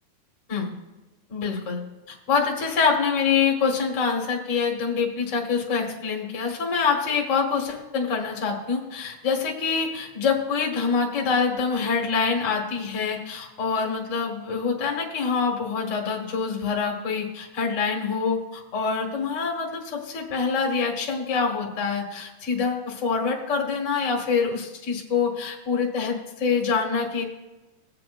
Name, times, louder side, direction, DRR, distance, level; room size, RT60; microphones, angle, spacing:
voice 1, 1.3-1.8 2.1-27.2, left 5 dB, 35° left, -1 dB, 1.2 m, -25 dB
22.5 x 7.6 x 2.6 m, 1.1 s
omnidirectional pair, 4.1 m